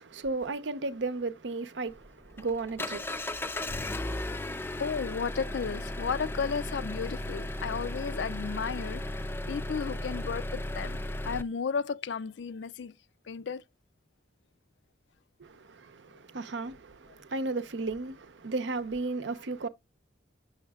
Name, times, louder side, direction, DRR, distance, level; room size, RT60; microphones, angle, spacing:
voice 1, 0.0-4.0 15.4-19.7, right 3 dB, 90° right, 0.7 m, -35 dB
Engine, 1.9-11.4, left 1 dB, 10° left, 0.4 m, -35 dB
voice 2, 4.8-9.0 9.5-11.0 11.2-12.9 13.3-13.6, left 6 dB, 80° left, 0.5 m, -33 dB
6.4 x 6.4 x 2.3 m
head